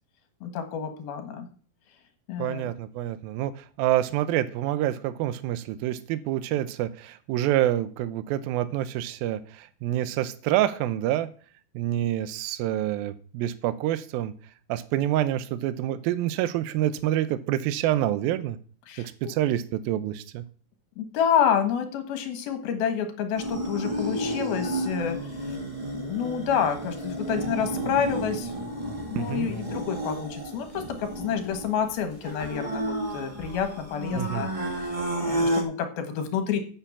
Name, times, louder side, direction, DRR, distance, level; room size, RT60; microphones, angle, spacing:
voice 1, 0.4-1.5 2.3-2.7 18.9-19.1 21.0-25.3 25.9-28.5 29.1-34.5 35.3-36.6, left 8 dB, 75° left, 7 dB, 3.4 m, -28 dB
voice 2, 2.4-11.3 11.7-14.3 14.7-18.6 19.0-20.4 29.2-29.5 34.1-34.5, right 13 dB, 80° right, 13 dB, 2.5 m, -27 dB
sound 1, 23.3-35.6, right 1 dB, 25° right, 0.6 m, -31 dB
8.8 x 7.2 x 7.2 m, 0.43 s
omnidirectional pair, 4.4 m